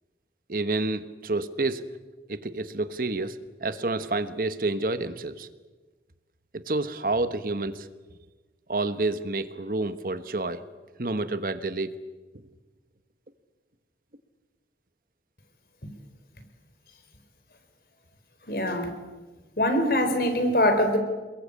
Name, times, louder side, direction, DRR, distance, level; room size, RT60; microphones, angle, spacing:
voice 1, 0.5-1.9 2.3-5.5 6.5-7.9 8.7-10.6 11.0-11.9, right 2 dB, 50° right, 11 dB, 1.3 m, -29 dB
voice 2, 18.5-18.9 19.6-21.0, left 1 dB, 55° left, 7 dB, 4.4 m, -23 dB
28.5 x 22.0 x 8.6 m, 1.3 s
head